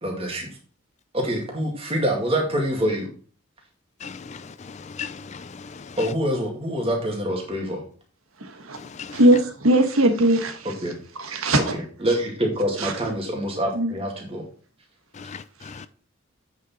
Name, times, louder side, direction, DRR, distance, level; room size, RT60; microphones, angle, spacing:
voice 1, 0.0-0.5 1.1-3.1 6.0-7.8 10.8-11.0 11.7-14.4, equal, 30° right, 2.2 m, -25 dB
voice 2, 4.0-6.0 8.8-9.2 15.2-15.9, left 6 dB, 35° left, 0.4 m, -38 dB
voice 3, 9.1-10.6 11.2-11.7 12.8-12.9 13.7-13.9, right 1 dB, 90° right, 1.4 m, -19 dB
8.5 x 6.0 x 4.3 m
head